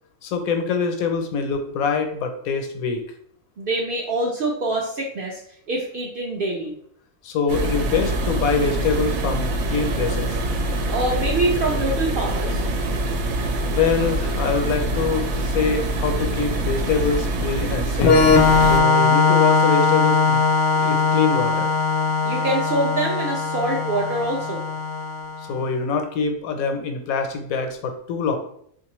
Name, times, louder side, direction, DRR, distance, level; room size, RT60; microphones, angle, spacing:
voice 1, 0.2-3.0 7.2-10.4 13.7-18.2 18.6-20.4 20.7-21.7 25.5-28.4, left 5 dB, 90° left, 5 dB, 1.1 m, -24 dB
voice 2, 3.6-5.4 5.7-6.7 10.9-12.6 22.2-24.6, right 2 dB, 65° right, -1 dB, 0.5 m, -25 dB
sound 1, 7.5-18.8, right 1 dB, 85° right, 1.0 m, -25 dB
Organ, 18.0-25.5, left 4 dB, 65° left, 0.6 m, -19 dB
3.7 x 2.5 x 3.0 m, 0.66 s
omnidirectional pair, 1.4 m